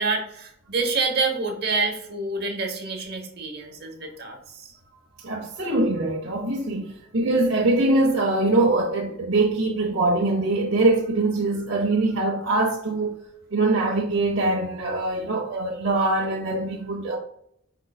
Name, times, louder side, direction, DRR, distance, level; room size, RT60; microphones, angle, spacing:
voice 1, 0.0-4.7, right 3 dB, 50° right, 0.9 m, -27 dB
voice 2, 5.2-13.2 13.5-17.2, right 2 dB, 85° right, 0.7 m, -23 dB
5.2 x 3.7 x 2.3 m
head